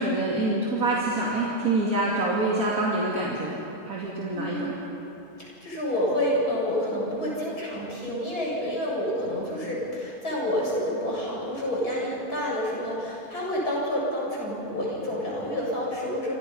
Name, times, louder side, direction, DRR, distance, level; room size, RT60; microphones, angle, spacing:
voice 1, 0.0-3.6 3.9-4.7, right 2 dB, 70° right, -5 dB, 3.2 m, -26 dB
voice 2, 4.3-4.7 5.4-16.3, equal, 90° left, -4 dB, 7.9 m, -28 dB
28.0 x 27.0 x 5.5 m, 2.9 s
omnidirectional pair, 1.6 m